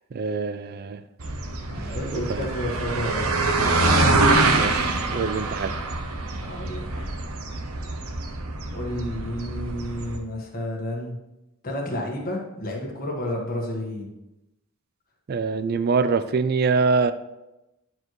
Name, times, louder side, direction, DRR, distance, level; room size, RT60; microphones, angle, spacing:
voice 1, 0.1-1.0 2.1-2.5 4.5-5.7 15.3-17.1, right 4 dB, 45° right, 12 dB, 0.3 m, -24 dB
sound 1, 1.2-10.2, right 2 dB, 80° right, 0.9 m, -25 dB
voice 2, 1.7-3.2 6.3-7.0 8.7-11.2 11.6-14.1, left 1 dB, 40° left, -1 dB, 1.4 m, -31 dB
10.5 x 4.7 x 3.1 m, 0.96 s
head